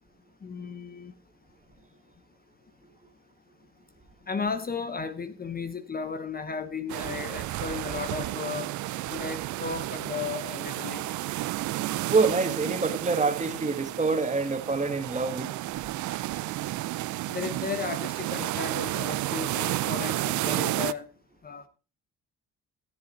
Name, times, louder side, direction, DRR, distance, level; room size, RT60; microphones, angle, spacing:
voice 1, 0.4-1.1 4.3-8.7 9.1-11.1 17.3-21.1 21.4-21.7, left 5 dB, 30° left, 0.8 m, -35 dB
sound 1, 6.9-20.9, right 16 dB, 75° right, 0.5 m, -32 dB
voice 2, 12.1-15.5, right 4 dB, 25° right, 1.6 m, -26 dB
13.0 x 7.7 x 4.3 m
cardioid pair, 90°, 30 cm